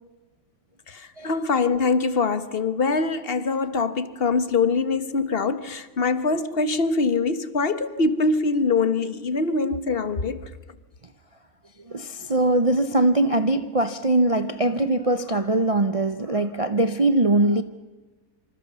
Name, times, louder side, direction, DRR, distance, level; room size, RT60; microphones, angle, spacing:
voice 1, 0.9-10.4, left 4 dB, 40° left, 1.3 m, -23 dB
voice 2, 11.9-17.6, right 2 dB, 30° right, 0.7 m, -21 dB
27.0 x 26.5 x 6.9 m
omnidirectional pair, 1.6 m